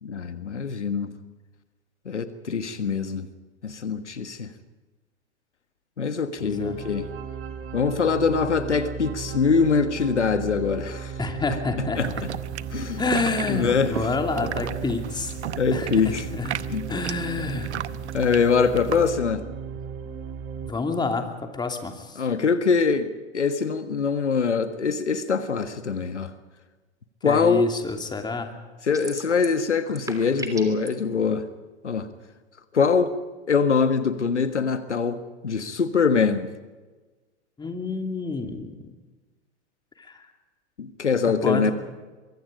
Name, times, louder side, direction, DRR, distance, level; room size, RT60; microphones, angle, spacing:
voice 1, 0.0-1.1 2.0-3.3 3.6-4.5 6.0-7.1 7.7-11.1 12.0-12.1 12.7-13.0 13.5-13.9 15.6-16.2 16.7-16.8 18.1-19.4 22.2-26.3 27.2-27.7 28.8-31.4 31.8-32.1 32.7-33.1 33.5-36.5 40.8-41.7, left 5 dB, 90° left, 10 dB, 1.6 m, -23 dB
voice 2, 6.4-6.8 11.2-12.2 13.0-15.3 15.7-16.6 16.9-17.7 20.6-22.2 27.2-28.5 37.6-38.9 40.0-40.3 41.2-41.7, left 4 dB, 10° left, 5 dB, 2.8 m, -29 dB
sound 1, 6.4-20.7, right 6 dB, 40° right, 2.5 m, -36 dB
sound 2, 12.0-19.1, right 10 dB, 75° right, 0.9 m, -35 dB
sound 3, 28.9-29.6 29.9-30.9, right 3 dB, 10° right, 3.0 m, -36 dB
23.5 x 23.5 x 5.2 m, 1.3 s
hypercardioid pair, 105°, 34 cm